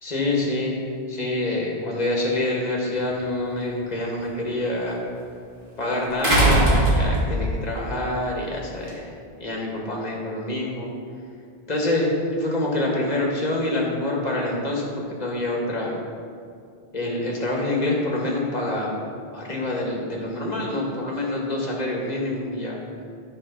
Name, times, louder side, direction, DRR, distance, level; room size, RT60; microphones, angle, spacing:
voice 1, 0.0-5.0 5.8-9.1 9.4-10.9 11.7-16.0 16.9-18.9 19.3-22.8, left 1 dB, 45° left, -2 dB, 1.7 m, -26 dB
sound 1, 3.0-3.1 6.2-7.5 8.9-9.0, right 1 dB, 80° right, 2.3 m, -19 dB
11.5 x 5.0 x 5.5 m, 2.3 s
omnidirectional pair, 1.0 m